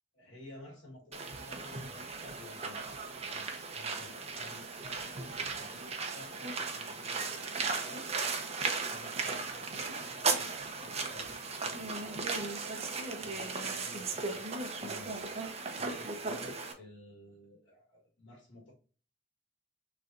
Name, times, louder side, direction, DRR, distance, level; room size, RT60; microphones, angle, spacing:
voice 1, 0.2-8.0 8.9-12.4 13.2-14.5 14.8-18.7, left 1 dB, 80° left, -2 dB, 1.5 m, -53 dB
sound 1, 1.1-16.7, right 4 dB, 35° right, 0.8 m, -36 dB
6.3 x 3.3 x 2.6 m, 0.39 s
head